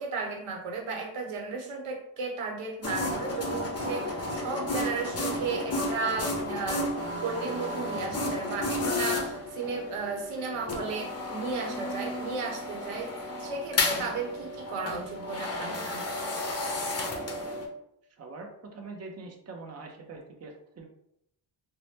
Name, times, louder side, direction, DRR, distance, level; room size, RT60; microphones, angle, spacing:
voice 1, 0.0-6.9 7.1-13.1 13.4-16.1, right 4 dB, 85° right, 2 dB, 0.8 m, -34 dB
sound 1, 2.8-17.7, left 2 dB, 30° left, 0.6 m, -32 dB
voice 2, 18.2-20.8, right 3 dB, 30° right, 2 dB, 0.6 m, -43 dB
2.7 x 2.1 x 3.2 m, 0.78 s
cardioid pair, 80°, 50 cm